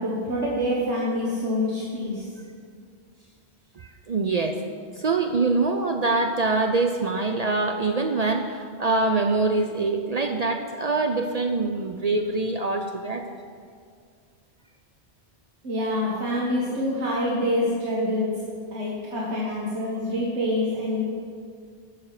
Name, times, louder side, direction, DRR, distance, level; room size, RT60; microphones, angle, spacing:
voice 1, 0.0-2.2 15.6-18.3 18.7-21.0, left 1 dB, 85° right, -5 dB, 1.7 m, -26 dB
voice 2, 3.8-4.6 5.0-13.2, right 3 dB, 50° right, 4 dB, 0.5 m, -24 dB
13.0 x 6.4 x 4.8 m, 2.1 s
omnidirectional pair, 1.1 m